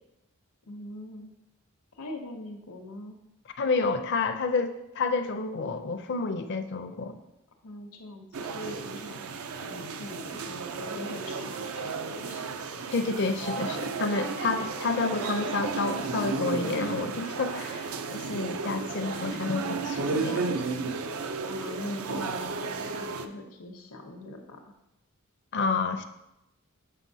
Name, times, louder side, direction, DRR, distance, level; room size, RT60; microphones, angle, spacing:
voice 1, 0.7-1.3 1.9-3.2 7.6-9.2 9.6-12.5 21.4-24.6, left 1 dB, 80° left, 1 dB, 0.8 m, -41 dB
voice 2, 3.6-7.2 12.9-20.5 25.5-26.0, left 4 dB, 50° left, 7 dB, 0.5 m, -29 dB
sound 1, 8.3-23.3, right 4 dB, 70° right, 0.5 m, -33 dB
7.4 x 5.9 x 2.7 m, 0.87 s
head